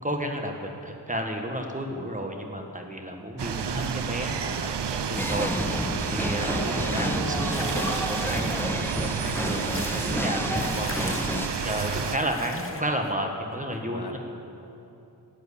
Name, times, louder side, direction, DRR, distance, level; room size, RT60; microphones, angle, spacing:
voice 1, 0.0-5.7 6.1-8.8 9.1-9.6 9.9-11.2 11.6-14.2, right 1 dB, 20° right, 2 dB, 1.4 m, -32 dB
sound 1, 3.4-12.2, right 7 dB, 75° right, 0.7 m, -30 dB
sound 2, 5.2-11.5, left 1 dB, 5° left, 0.4 m, -30 dB
voice 2, 5.8-6.2 11.9-12.1 13.7-14.2, left 3 dB, 60° left, 4 dB, 1.3 m, -42 dB
sound 3, 7.5-8.7 9.2-10.0 10.5-12.8, left 2 dB, 30° left, 1.2 m, -38 dB
12.5 x 9.1 x 8.5 m, 2.9 s
wide cardioid pair, 80°, 43 cm